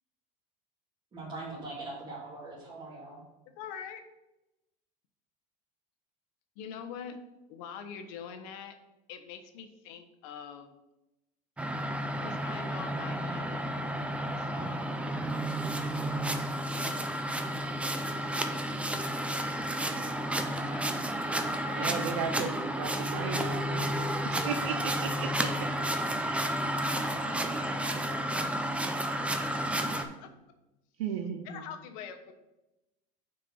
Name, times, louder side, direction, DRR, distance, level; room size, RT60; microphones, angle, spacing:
voice 1, 1.1-3.2, right 2 dB, 25° right, -8 dB, 2.6 m, -41 dB
voice 2, 3.5-4.0 6.5-7.2 7.5-8.8 9.1-10.7 12.2-16.4 17.3-18.8 20.5-22.0 24.5-24.9 25.6-30.3 31.4-32.3, left 7 dB, 75° left, 7 dB, 1.0 m, -47 dB
sound 1, 11.6-30.0, right 1 dB, 5° right, 0.5 m, -31 dB
voice 3, 21.7-25.7 26.2-26.5 31.0-31.6, right 6 dB, 90° right, 6 dB, 0.7 m, -36 dB
6.2 x 4.5 x 6.3 m, 0.96 s
supercardioid pair, 135°, 18 cm